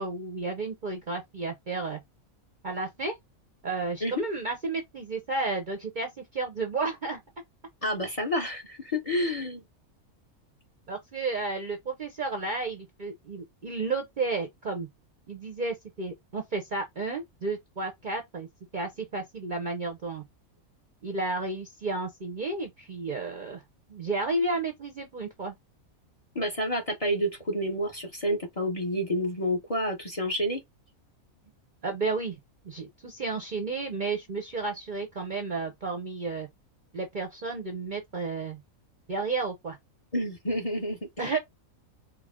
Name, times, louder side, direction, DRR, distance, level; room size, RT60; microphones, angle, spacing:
voice 1, 0.0-2.0 2.6-3.1 3.6-7.2 10.9-14.9 15.3-18.5 18.7-20.2 21.0-23.6 23.9-25.5 31.8-32.4 32.6-36.5 36.9-38.6 39.1-39.8 41.2-41.4, right 3 dB, 45° right, 0.7 m, -32 dB
voice 2, 7.8-9.6 26.3-30.6 40.1-41.4, equal, 30° left, 1.0 m, -29 dB
4.7 x 2.0 x 3.5 m
omnidirectional pair, 1.5 m